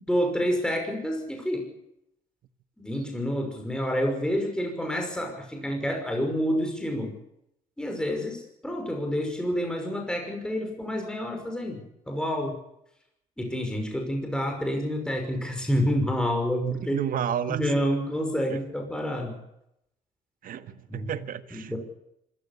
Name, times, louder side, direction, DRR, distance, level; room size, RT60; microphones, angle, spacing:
voice 1, 0.1-1.7 2.8-7.1 7.8-12.6 13.4-17.0 17.5-19.4 20.9-21.1 21.5-21.8, equal, 5° left, 5.7 m, -28 dB
voice 2, 16.6-17.9 18.5-18.6 20.4-21.8, right 9 dB, 65° right, 1.6 m, -31 dB
25.5 x 14.5 x 8.5 m
cardioid pair, 100°, 16 cm